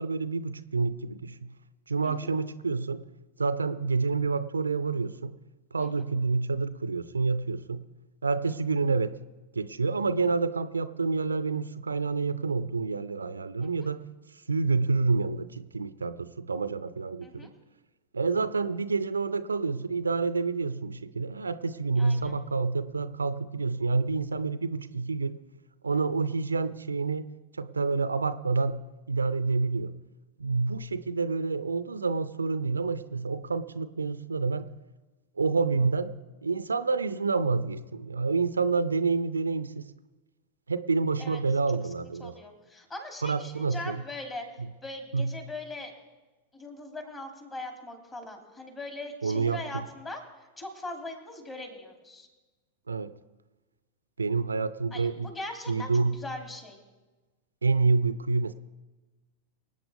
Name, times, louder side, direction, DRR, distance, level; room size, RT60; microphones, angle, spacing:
voice 1, 0.0-1.5 1.9-3.0 3.4-5.3 5.7-7.8 8.2-9.2 9.5-14.0 14.5-17.5 18.1-25.3 25.8-27.3 27.6-28.8 29.1-29.9 30.4-34.7 35.4-36.1 36.4-39.8 40.7-42.3 43.2-44.0 44.6-44.7 45.1-45.3 49.2-49.8 52.9-53.1 54.2-55.3 55.7-56.2 57.6-58.5, right 4 dB, 75° right, 14 dB, 0.5 m, -28 dB
voice 2, 22.0-22.4 41.2-41.4 42.2-44.4 44.8-45.9 46.5-50.2 50.6-52.3 54.9-56.8, left 2 dB, 20° left, 2 dB, 3.0 m, -40 dB
25.0 x 8.7 x 3.6 m, 1.2 s
figure-of-eight pair, 90°, 0 cm